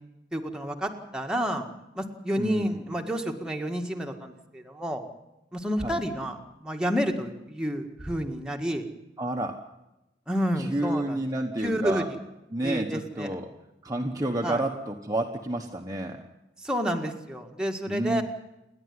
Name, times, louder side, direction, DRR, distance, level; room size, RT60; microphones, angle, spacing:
voice 1, 0.3-1.7 1.9-5.0 5.5-8.9 10.3-11.2 11.6-12.0 12.6-13.3 14.4-14.6 16.6-18.2, equal, 5° right, 2 dB, 1.8 m, -30 dB
voice 2, 2.4-2.8 5.8-6.0 9.2-9.6 10.6-12.1 12.5-13.5 13.8-16.2 17.9-18.2, right 1 dB, 20° right, 2 dB, 1.2 m, -30 dB
28.5 x 11.0 x 9.7 m, 0.93 s
head